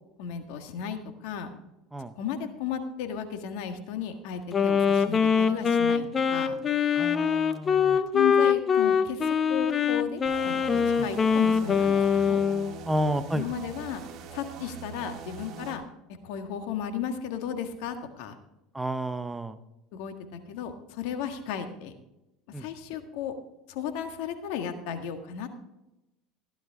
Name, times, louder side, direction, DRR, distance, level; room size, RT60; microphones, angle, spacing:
voice 1, 0.2-1.5 2.1-6.5 8.1-10.6 11.0-12.4 13.3-14.0 14.3-15.8 16.2-18.4 19.9-21.9 22.5-23.3 23.7-25.5, left 8 dB, 70° left, 7 dB, 1.6 m, -34 dB
Wind instrument woodwind instrument, 4.5-12.7, left 7 dB, 30° left, 0.8 m, -23 dB
voice 2, 7.0-8.0 11.0-11.1 12.9-13.4 18.7-19.6 22.5-22.6, right 1 dB, 10° right, 11 dB, 0.7 m, -31 dB
sound 1, 10.3-15.8, right 6 dB, 45° right, 2.1 m, -43 dB
16.0 x 11.0 x 3.6 m, 0.94 s
supercardioid pair, 110°, 0 cm